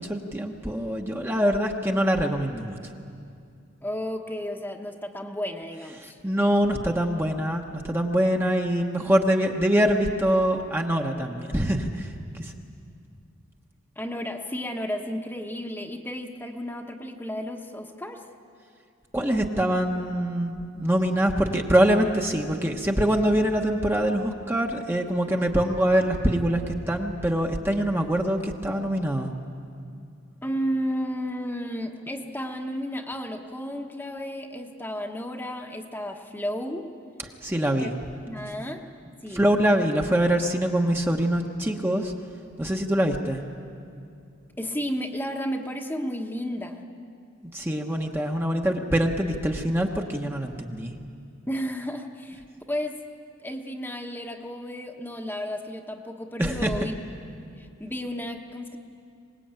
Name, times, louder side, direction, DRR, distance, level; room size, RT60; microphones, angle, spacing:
voice 1, 0.0-2.8 6.0-12.5 19.1-29.3 37.4-37.9 39.3-42.1 42.6-43.4 47.5-50.9 56.4-56.8, right 1 dB, 10° right, 2 dB, 1.1 m, -24 dB
voice 2, 3.8-6.2 14.0-18.2 30.4-36.9 37.8-37.9 38.3-39.5 44.6-46.9 51.5-53.0 53.4-56.9 57.6-58.8, equal, 10° left, 3 dB, 1.2 m, -33 dB
24.0 x 20.5 x 8.9 m, 2.4 s
head